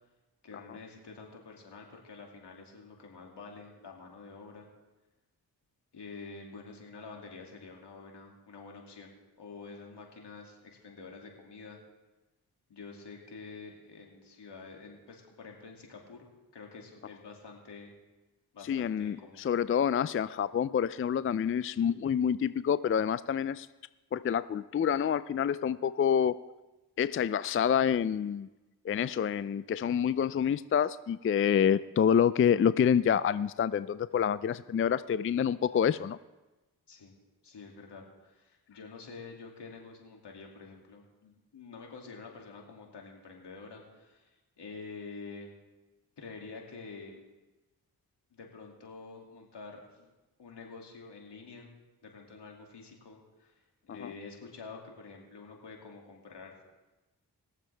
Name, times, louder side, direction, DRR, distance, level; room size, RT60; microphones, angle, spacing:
voice 1, 0.4-4.7 5.9-11.8 12.7-16.3 16.5-17.9 18.5-19.5 36.9-37.2 37.4-45.5 46.2-47.2 48.3-50.1 50.4-51.7 52.0-56.6, left 4 dB, 75° left, 0 dB, 2.5 m, -48 dB
voice 2, 18.6-23.7 24.1-26.4 27.0-28.5 28.8-36.2 53.9-54.1, left 8 dB, 35° left, 16 dB, 0.4 m, -27 dB
21.0 x 7.4 x 3.4 m, 1.1 s
cardioid pair, 40°, 41 cm